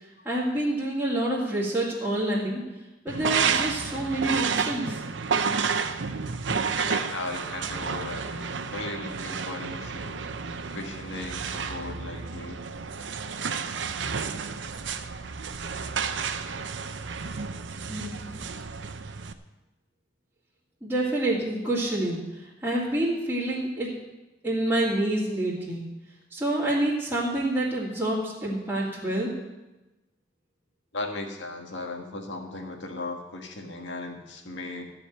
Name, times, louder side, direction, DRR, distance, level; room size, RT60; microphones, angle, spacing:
voice 1, 0.2-2.6 3.0-5.0 17.9-18.1 20.8-22.2 22.6-23.9 24.4-25.8 26.3-29.3, right 1 dB, 10° right, -11 dB, 2.4 m, -27 dB
sound 1, 3.1-19.3, right 5 dB, 75° right, 0.7 m, -31 dB
voice 2, 6.8-10.2 10.7-12.6 30.9-34.8, left 2 dB, 75° left, 3 dB, 1.7 m, -37 dB
14.0 x 5.0 x 9.2 m, 1.0 s
head